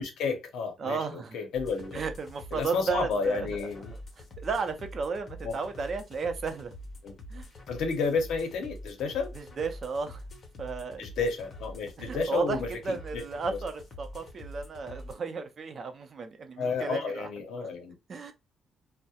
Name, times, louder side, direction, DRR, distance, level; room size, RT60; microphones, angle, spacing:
voice 1, 0.0-2.0 2.5-3.9 5.4-5.6 7.0-7.1 7.7-9.3 11.0-13.2 13.5-13.6 16.6-17.9, left 5 dB, 80° left, 0.7 m, -31 dB
voice 2, 0.8-1.4 1.9-3.5 4.4-6.7 7.3-7.5 9.3-10.2 10.6-11.0 12.0-17.3 17.6-17.7 18.1-18.3, right 4 dB, 50° right, 0.5 m, -33 dB
sound 1, 1.5-15.1, left 1 dB, 45° left, 0.7 m, -45 dB
2.3 x 2.0 x 2.7 m
cardioid pair, 90°, 0 cm